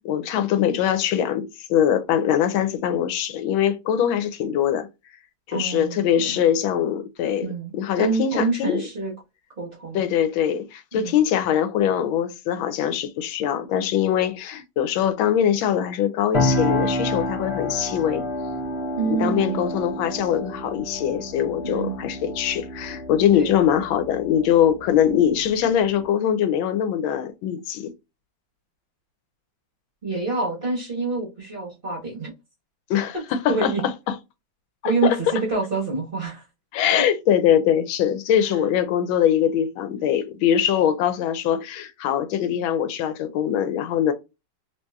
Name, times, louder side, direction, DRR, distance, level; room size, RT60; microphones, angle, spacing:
voice 1, 0.0-4.9 5.5-7.5 7.8-8.8 9.9-18.3 19.2-27.9 32.9-33.7 34.1-34.2 34.8-35.2 36.7-44.1, left 9 dB, 85° left, 1.4 m, -22 dB
voice 2, 5.5-6.4 7.4-9.1 9.6-10.1 10.9-11.2 19.0-19.7 21.6-22.0 23.3-23.5 30.0-32.3 33.1-33.2 33.5-33.8 34.8-36.4, right 4 dB, 35° right, 1.1 m, -27 dB
sound 1, 16.3-26.1, left 1 dB, 50° left, 0.8 m, -29 dB
3.3 x 2.7 x 2.2 m
omnidirectional pair, 2.1 m